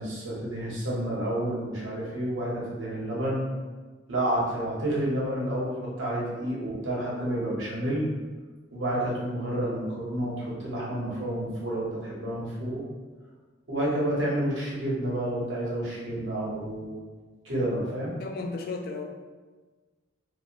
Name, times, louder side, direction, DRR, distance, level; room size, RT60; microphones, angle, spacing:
voice 1, 0.0-3.4 4.1-8.0 8.7-12.8 13.7-16.9 17.4-18.1, right 1 dB, 85° right, -6 dB, 0.9 m, -30 dB
voice 2, 18.2-19.1, left 3 dB, 50° left, 3 dB, 0.3 m, -34 dB
2.5 x 2.1 x 2.9 m, 1.4 s
head